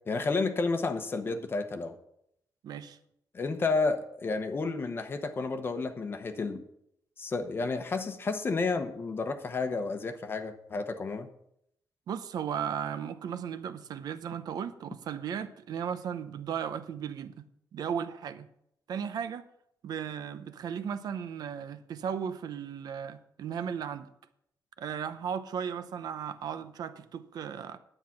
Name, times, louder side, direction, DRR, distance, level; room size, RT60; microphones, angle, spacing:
voice 1, 0.1-1.9 3.3-6.6 7.2-11.3, left 3 dB, 30° left, 8 dB, 0.9 m, -31 dB
voice 2, 2.6-3.0 12.1-17.4 17.7-18.5 18.9-19.4 19.8-24.1 24.8-27.8, right 8 dB, 65° right, 12 dB, 0.7 m, -36 dB
10.0 x 8.8 x 5.8 m, 0.75 s
wide cardioid pair, 155°, 7 cm